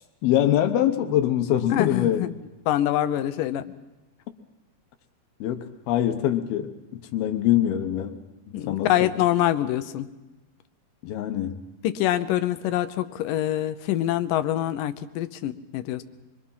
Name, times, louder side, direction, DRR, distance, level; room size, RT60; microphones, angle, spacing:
voice 1, 0.2-2.3 5.4-6.7 7.1-8.2 8.7-9.1 11.0-11.6, left 11 dB, 90° left, 6 dB, 3.0 m, -23 dB
voice 2, 1.7-2.4 2.7-3.6 8.5-10.1 11.8-16.0, left 13 dB, 75° left, 11 dB, 2.3 m, -25 dB
25.5 x 23.0 x 5.7 m, 1.1 s
omnidirectional pair, 4.3 m